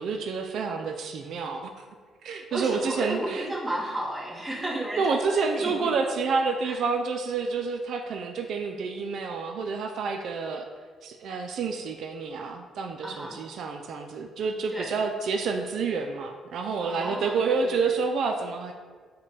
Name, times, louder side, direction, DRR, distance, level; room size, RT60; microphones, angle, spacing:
voice 1, 0.0-1.8 2.2-3.5 4.6-10.7 11.0-18.7, right 4 dB, 70° right, 4 dB, 0.3 m, -29 dB
voice 2, 2.5-6.1 6.6-6.8 13.0-13.4 14.7-15.0 16.8-17.8, right 1 dB, 5° right, -5 dB, 1.0 m, -33 dB
4.9 x 2.2 x 4.0 m, 1.5 s
cardioid pair, 90°, 0 cm